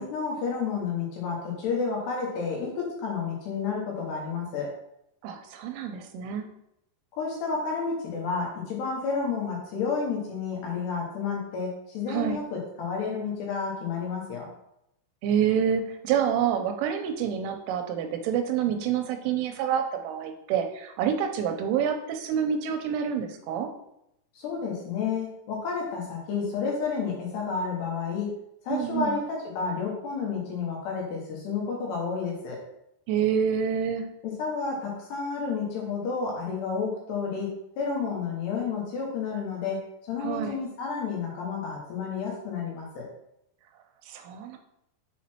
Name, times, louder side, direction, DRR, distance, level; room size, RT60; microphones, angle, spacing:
voice 1, 0.0-4.7 7.1-14.5 24.3-28.3 28.6-32.6 34.2-43.1, left 5 dB, 70° left, -2 dB, 3.0 m, -31 dB
voice 2, 5.2-6.5 12.1-12.4 15.2-23.7 28.7-29.2 33.1-34.1 40.2-40.6 44.1-44.6, right 8 dB, 90° right, 5 dB, 3.2 m, -27 dB
7.3 x 4.2 x 4.4 m, 0.80 s
omnidirectional pair, 5.7 m